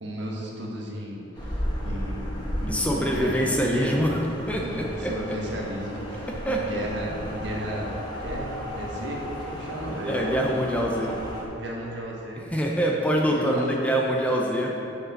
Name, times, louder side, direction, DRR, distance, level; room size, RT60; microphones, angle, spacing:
voice 1, 0.0-4.0 4.6-10.6 11.6-12.5 13.3-13.7, equal, 70° right, -2 dB, 1.4 m, -34 dB
sound 1, 1.3-11.4, equal, 25° left, 1.3 m, -34 dB
voice 2, 2.7-4.2 4.5-5.1 6.4-6.6 7.1-7.2 10.0-11.1 12.4-14.8, equal, 5° left, -1 dB, 0.7 m, -25 dB
6.8 x 6.6 x 5.7 m, 3.0 s
head